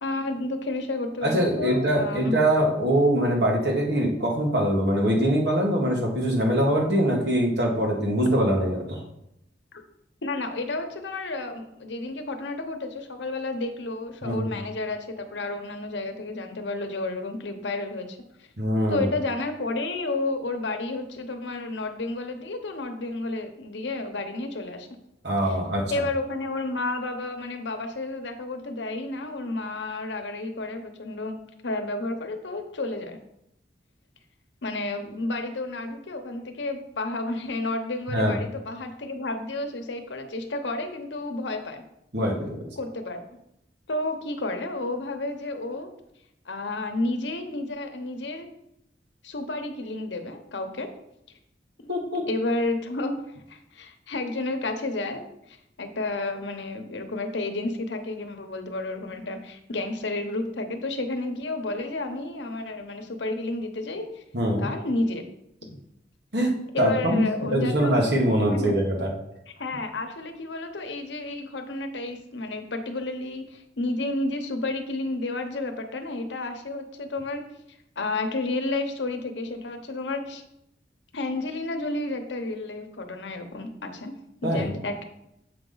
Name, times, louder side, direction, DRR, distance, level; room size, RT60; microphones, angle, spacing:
voice 1, 0.0-2.4 9.7-9.8 10.2-18.2 18.9-24.9 25.5-25.6 25.9-31.4 31.6-33.2 34.6-41.8 42.8-43.2 43.9-45.9 46.5-48.5 49.2-50.9 51.8-51.9 52.3-53.2 53.5-64.2 64.6-65.2 65.6-65.8 66.7-68.0 68.5-68.8 69.6-77.4 78.0-80.4 81.1-84.1 84.4-85.0, left 2 dB, 85° left, 6 dB, 0.9 m, -31 dB
voice 2, 1.2-9.0 14.2-14.6 18.6-19.1 25.2-25.9 38.1-38.4 42.1-42.7 51.9-52.2 64.3-64.7 66.3-69.1 84.4-84.7, equal, 70° right, 0 dB, 1.6 m, -23 dB
7.5 x 5.0 x 3.9 m, 0.81 s
head